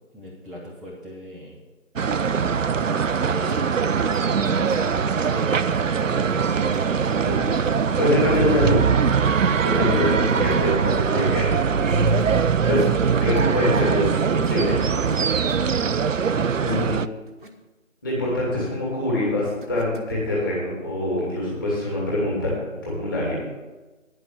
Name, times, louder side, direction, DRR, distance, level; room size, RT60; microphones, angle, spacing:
voice 1, 0.1-1.6 3.2-5.5 6.0-6.6 18.2-18.8, equal, ahead, -8 dB, 0.6 m, -38 dB
sound 1, 2.0-17.1, right 6 dB, 70° right, 0.5 m, -22 dB
sound 2, 3.5-3.7 4.1-4.4 4.7-4.9 5.2-5.5 6.7-7.0 8.3-8.6 9.7-10.0 10.3-10.7 11.9-12.3 13.4-13.9 15.1-15.7 17.3-17.5 19.6-20.1, right 1 dB, 40° right, 1.1 m, -42 dB
voice 2, 8.0-8.8 9.6-11.5 12.7-12.8 13.2-14.8 16.6-17.0 18.0-22.5 22.8-23.4, left 1 dB, 15° left, -5 dB, 2.5 m, -24 dB
10.0 x 6.2 x 8.2 m, 1.2 s
figure-of-eight pair, 165°, 40 cm